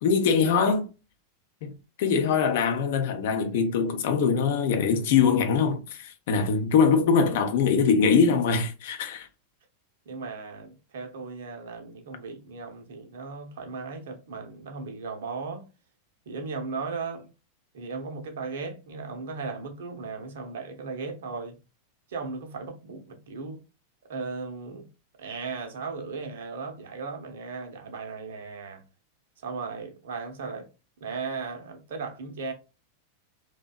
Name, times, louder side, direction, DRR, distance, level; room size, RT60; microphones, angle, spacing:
voice 1, 0.0-0.9 1.6-1.7 2.0-9.3, left 5 dB, 55° left, 0.5 m, -23 dB
voice 2, 10.1-15.7 16.3-17.3 17.7-21.6 22.1-23.6 24.1-24.9 25.2-28.8 29.4-30.7 31.0-32.5, right 4 dB, 60° right, 0.6 m, -36 dB
2.6 x 2.1 x 2.2 m
figure-of-eight pair, 90°, 0 cm